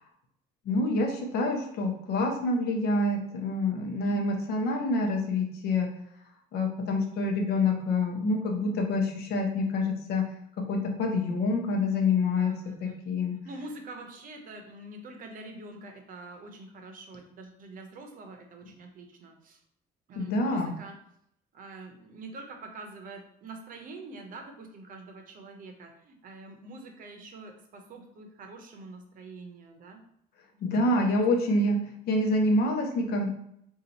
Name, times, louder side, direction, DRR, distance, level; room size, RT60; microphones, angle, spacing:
voice 1, 0.7-5.9 6.5-10.2 10.7-12.5 12.8-13.3 20.2-20.8 30.6-33.3, left 2 dB, 70° left, 2 dB, 0.7 m, -27 dB
voice 2, 12.4-13.0 13.4-19.6 20.1-20.9 21.5-30.0 30.7-31.2, right 2 dB, 55° right, 4 dB, 0.6 m, -45 dB
2.8 x 2.4 x 3.9 m, 0.72 s
cardioid pair, 110°, 17 cm